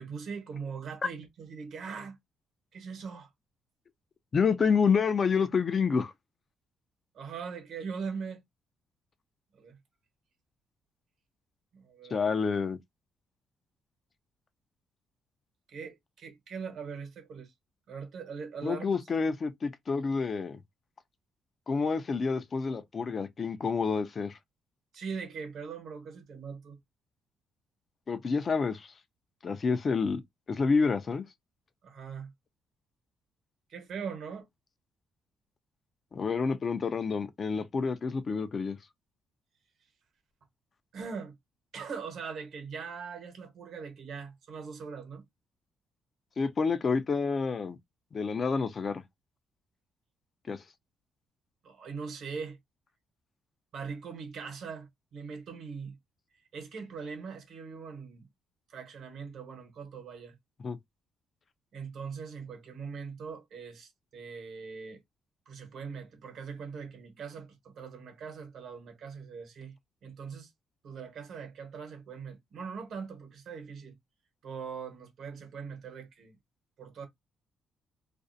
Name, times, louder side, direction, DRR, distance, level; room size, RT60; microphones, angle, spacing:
voice 1, 0.0-2.2 2.7-3.3 7.1-8.4 9.5-9.8 11.7-12.3 15.7-17.5 17.9-18.9 24.9-26.8 31.8-32.3 33.7-34.5 40.9-41.3 41.7-45.2 51.6-52.6 53.7-56.0 56.5-58.3 58.7-60.3 61.7-65.0 65.5-69.7 70.0-70.5 70.8-73.9 74.4-76.4 76.8-77.1, right 5 dB, 70° right, 1.1 m, -41 dB
voice 2, 4.3-6.1 12.1-12.8 18.6-20.6 21.7-24.4 28.1-28.9 29.4-30.2 30.5-31.2 36.1-38.8 46.4-47.8 48.1-49.0 50.5-50.6 60.6-60.8, left 5 dB, 40° left, 0.4 m, -28 dB
2.5 x 2.0 x 2.6 m
cardioid pair, 90°, 0 cm